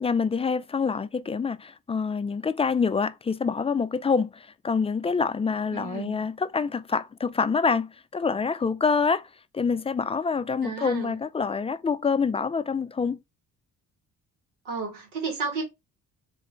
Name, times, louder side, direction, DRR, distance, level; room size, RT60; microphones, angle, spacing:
voice 1, 0.0-9.3 9.5-13.2, left 5 dB, 15° left, 0.4 m, -26 dB
voice 2, 5.7-6.2 10.6-11.2 14.7-15.6, right 4 dB, 80° right, 2.0 m, -33 dB
3.6 x 3.2 x 4.5 m
hypercardioid pair, 50°, 41 cm